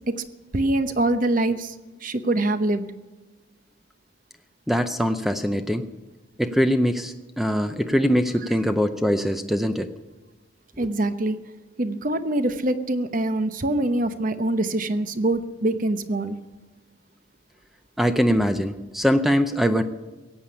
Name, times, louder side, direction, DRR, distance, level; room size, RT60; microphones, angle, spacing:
voice 1, 0.5-1.7 2.0-2.9 10.8-11.4 11.8-16.3, right 1 dB, 40° right, 10 dB, 0.9 m, -24 dB
voice 2, 4.7-5.8 6.4-9.9 10.8-10.9 18.0-19.8, equal, ahead, 9 dB, 0.5 m, -22 dB
17.0 x 8.6 x 9.8 m, 1.2 s
head